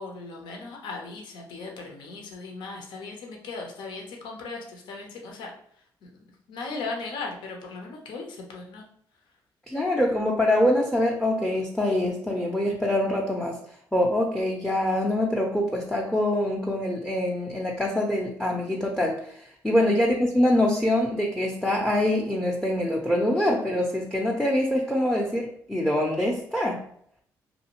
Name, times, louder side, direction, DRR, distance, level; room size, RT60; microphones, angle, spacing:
voice 1, 0.0-5.5 6.0-8.8 19.7-19.9, left 3 dB, 75° left, 1 dB, 0.7 m, -38 dB
voice 2, 9.7-13.6 13.9-19.2 19.6-26.8, left 1 dB, 5° left, -1 dB, 0.5 m, -24 dB
2.7 x 2.4 x 2.9 m, 0.64 s
supercardioid pair, 65°, 8 cm